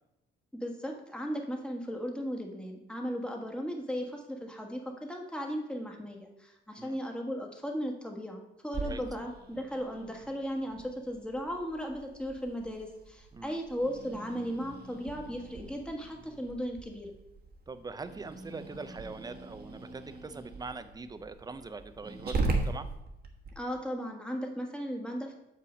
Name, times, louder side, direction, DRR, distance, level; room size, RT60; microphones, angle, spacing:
voice 1, 0.5-17.1 23.5-25.4, equal, 5° left, 1 dB, 1.5 m, -36 dB
Growling, 8.7-23.5, right 3 dB, 50° right, 1.4 m, -40 dB
voice 2, 17.7-22.9, right 3 dB, 20° right, 11 dB, 0.6 m, -42 dB
6.7 x 5.7 x 5.1 m, 0.90 s
cardioid pair, 90°, 20 cm